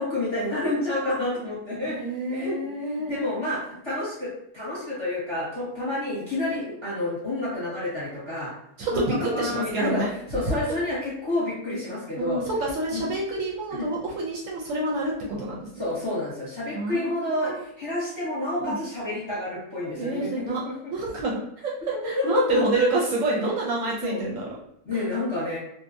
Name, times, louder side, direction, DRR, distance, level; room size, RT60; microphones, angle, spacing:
voice 1, 0.0-2.0 2.3-8.5 8.9-9.0 9.3-12.4 12.9-13.0 13.7-13.9 15.3-15.4 15.8-20.9 22.0-22.9 23.2-23.4 24.0-24.2 24.8-25.6, left 2 dB, 25° left, -9 dB, 0.8 m, -29 dB
voice 2, 1.9-3.3 8.8-10.1 12.2-15.6 16.7-17.1 17.3-17.6 18.6-18.8 20.0-20.6 20.9-21.3 21.6-21.7 22.0-24.5, right 2 dB, 70° right, -3 dB, 0.9 m, -28 dB
2.6 x 2.2 x 2.5 m, 0.75 s
omnidirectional pair, 1.6 m